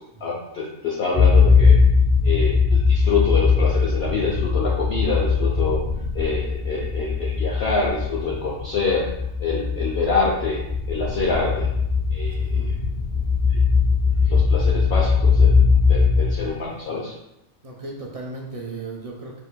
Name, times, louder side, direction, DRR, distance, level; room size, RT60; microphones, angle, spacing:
voice 1, 0.2-1.8 2.2-5.8 6.1-9.1 9.4-10.6 10.9-11.7 12.1-12.7 13.5-13.6 14.3-17.1, left 4 dB, 55° left, -3 dB, 0.8 m, -26 dB
sound 1, 1.1-16.8, left 5 dB, 30° left, 0.5 m, -19 dB
voice 2, 12.3-12.8 16.4-16.9 17.6-19.4, right 3 dB, 40° right, -1 dB, 0.5 m, -37 dB
4.9 x 4.6 x 2.2 m, 0.85 s
omnidirectional pair, 1.5 m